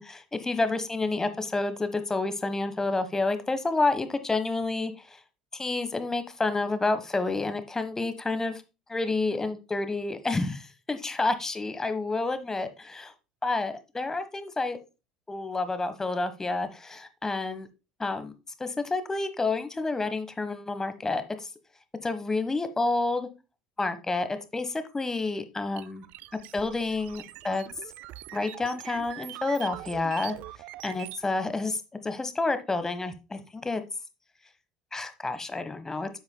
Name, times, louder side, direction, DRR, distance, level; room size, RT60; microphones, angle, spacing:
voice 1, 0.0-5.2 5.5-8.6 8.9-13.1 13.4-14.8 15.3-17.7 18.0-18.3 18.6-21.5 22.0-23.3 23.8-26.0 26.3-27.6 28.3-30.4 30.8-33.8 34.9-36.1, left 3 dB, 15° left, 11 dB, 1.3 m, -29 dB
sound 1, 25.8-31.2, right 14 dB, 55° right, 0.5 m, -43 dB
10.5 x 7.9 x 2.3 m, 0.29 s
figure-of-eight pair, 65°, 3 cm